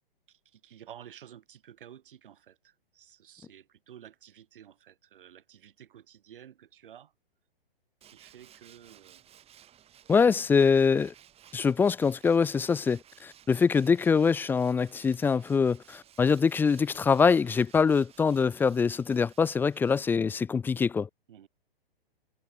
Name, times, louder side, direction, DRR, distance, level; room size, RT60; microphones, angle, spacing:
voice 1, 0.3-7.1 8.0-9.2 21.3-21.5, right 10 dB, 60° right, 7.2 m, -52 dB
Tools, 8.0-20.5, right 10 dB, 20° right, 6.5 m, -57 dB
voice 2, 10.1-11.1 11.5-21.1, left 5 dB, 5° left, 0.5 m, -24 dB
hypercardioid pair, 125°, 30 cm